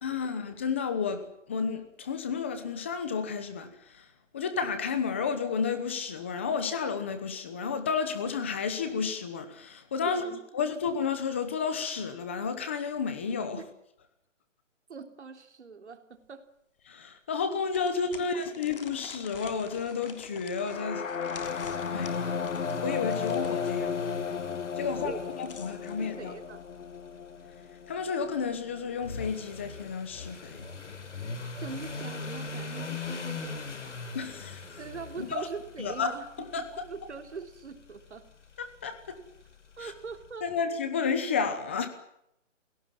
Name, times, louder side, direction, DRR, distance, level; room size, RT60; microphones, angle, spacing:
voice 1, 0.0-4.1 4.3-10.2 10.5-13.6 16.9-21.6 21.9-22.2 22.8-24.1 24.7-25.1 25.4-26.3 27.9-30.7 34.1-34.8 35.2-35.5 35.8-36.6 38.6-39.2 39.8-39.9 40.4-41.9, left 5 dB, 10° left, 9 dB, 1.0 m, -32 dB
voice 2, 10.1-10.4 10.7-10.8 13.6-13.7 14.9-16.5 18.3-18.7 25.0-25.2 25.5-25.7 26.0-26.6 31.6-34.2 34.8-36.3 36.6-38.3 39.8-40.5, right 5 dB, 60° right, 7 dB, 3.6 m, -42 dB
sound 1, 16.2-16.3 16.8-16.9 17.7-23.8 25.0-26.0, left 5 dB, 45° left, 3.5 m, -48 dB
sound 2, 20.6-28.5, left 6 dB, 80° left, 1.8 m, -34 dB
sound 3, 21.4-40.3, left 3 dB, 65° left, 5.3 m, -42 dB
28.0 x 18.0 x 7.6 m, 0.78 s
hypercardioid pair, 175°, 38 cm